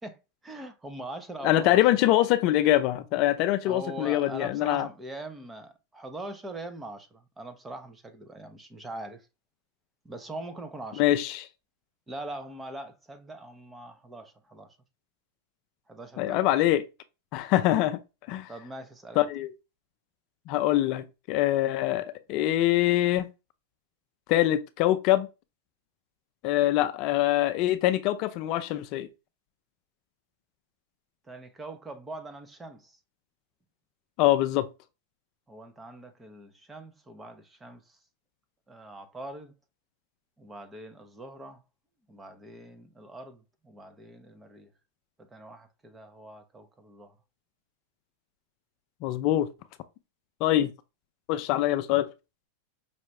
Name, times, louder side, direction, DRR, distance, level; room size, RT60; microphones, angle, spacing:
voice 1, 0.0-1.8 3.6-9.3 10.0-11.0 12.1-14.8 15.9-16.5 18.5-19.3 31.2-33.0 35.5-38.0 38.7-39.5 40.4-41.6 42.1-44.7 45.2-47.2, right 2 dB, 15° right, 0.8 m, -42 dB
voice 2, 1.4-4.9 11.0-11.4 16.2-16.8 17.3-18.0 18.3-18.5 19.2-19.5 20.5-23.3 24.3-25.3 26.4-29.1 34.2-34.7 49.0-49.5 50.4-50.7 51.3-52.1, left 14 dB, 50° left, 0.5 m, -24 dB
5.5 x 2.5 x 3.2 m
hypercardioid pair, 125°, 0 cm